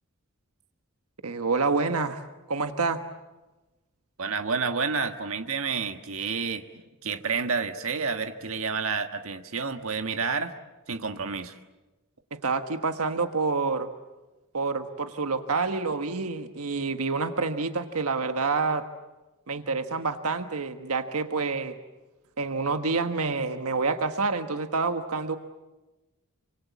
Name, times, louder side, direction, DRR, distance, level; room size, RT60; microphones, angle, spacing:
voice 1, 1.2-2.2 2.5-3.0 12.4-13.9 14.5-18.8 19.5-21.8 22.4-25.4, right 4 dB, 90° right, 8 dB, 1.4 m, -27 dB
voice 2, 4.2-6.6 7.0-10.5 10.9-11.5, right 5 dB, 70° right, 7 dB, 1.5 m, -29 dB
28.0 x 25.5 x 8.3 m, 1.1 s
head